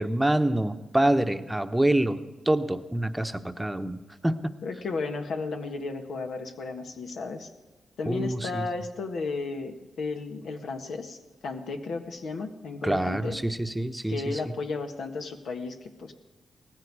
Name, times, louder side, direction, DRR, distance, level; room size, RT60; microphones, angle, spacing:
voice 1, 0.0-4.5 8.1-8.6 12.8-14.5, right 1 dB, 10° right, 8 dB, 1.0 m, -26 dB
voice 2, 4.6-7.5 8.0-13.4 14.1-16.1, left 3 dB, 75° left, 5 dB, 1.6 m, -34 dB
18.0 x 15.5 x 4.8 m, 1.2 s
cardioid pair, 70°, 0 cm